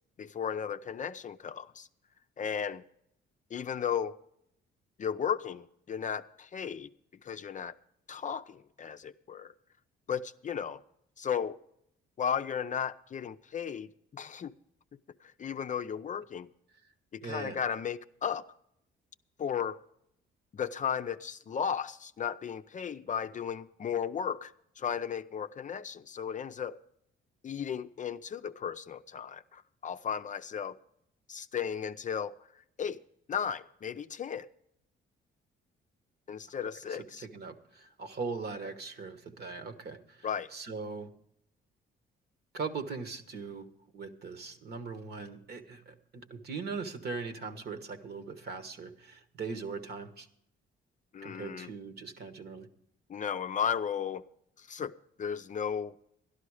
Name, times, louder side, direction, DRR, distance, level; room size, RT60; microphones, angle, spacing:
voice 1, 0.2-1.9 2.4-2.8 3.5-4.2 5.0-6.9 7.2-7.7 8.1-9.5 10.1-10.8 11.2-11.6 12.2-14.5 15.2-16.5 17.1-18.4 19.4-19.8 20.5-26.8 27.4-30.8 31.3-32.3 32.8-33.0 33.3-34.5 36.3-37.3 40.2-40.5 51.1-51.7 53.1-54.3 54.6-54.9 55.2-56.0, left 7 dB, 40° left, 0.5 m, -35 dB
voice 2, 17.2-17.6 36.9-41.1 42.5-43.7 43.9-50.3 51.2-52.7, right 4 dB, 55° right, 1.4 m, -40 dB
12.0 x 12.0 x 4.8 m
cardioid pair, 90°, 20 cm